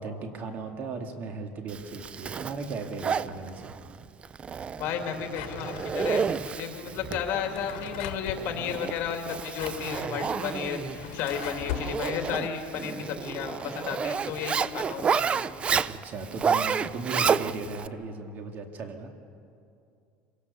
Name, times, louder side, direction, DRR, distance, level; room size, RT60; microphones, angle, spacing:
voice 1, 0.0-3.7 15.9-19.1, right 4 dB, 45° right, 5 dB, 2.2 m, -36 dB
Zipper (clothing), 1.7-17.9, right 6 dB, 25° right, 0.5 m, -31 dB
voice 2, 4.8-15.5, left 8 dB, 60° left, 4 dB, 2.6 m, -33 dB
Drawer open or close, 5.3-6.3 7.3-8.5 9.3-11.9, left 12 dB, 75° left, 1.5 m, -39 dB
26.5 x 17.5 x 7.0 m, 2.5 s
supercardioid pair, 125°, 4 cm